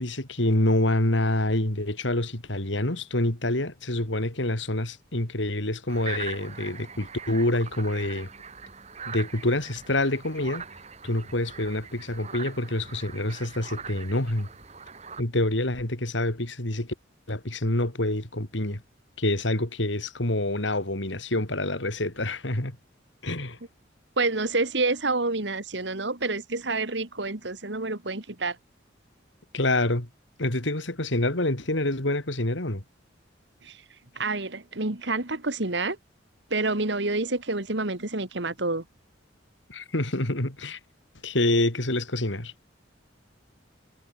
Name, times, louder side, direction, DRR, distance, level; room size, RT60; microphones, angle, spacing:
voice 1, 0.0-8.3 9.1-10.6 11.0-14.5 15.2-17.0 17.3-18.8 19.2-22.8 23.2-23.6 29.5-30.1 30.4-32.8 39.7-40.8 41.2-42.5, left 1 dB, 75° left, 3.5 m, -27 dB
sound 1, 5.9-15.2, right 6 dB, 35° right, 3.3 m, -42 dB
voice 2, 24.2-28.6 33.6-33.8 34.2-36.0 36.5-38.8, right 3 dB, 65° right, 2.2 m, -28 dB
head